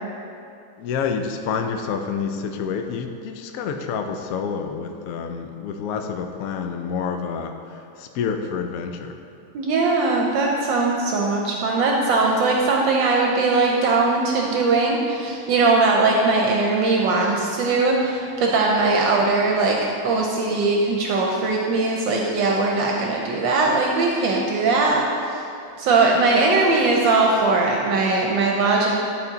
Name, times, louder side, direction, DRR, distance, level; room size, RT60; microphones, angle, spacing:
voice 1, 0.8-9.2, left 6 dB, 85° left, 5 dB, 0.7 m, -28 dB
voice 2, 9.5-19.8 20.0-25.4 25.8-29.0, right 3 dB, 75° right, -1 dB, 1.3 m, -20 dB
10.5 x 4.2 x 3.9 m, 2.5 s
omnidirectional pair, 2.1 m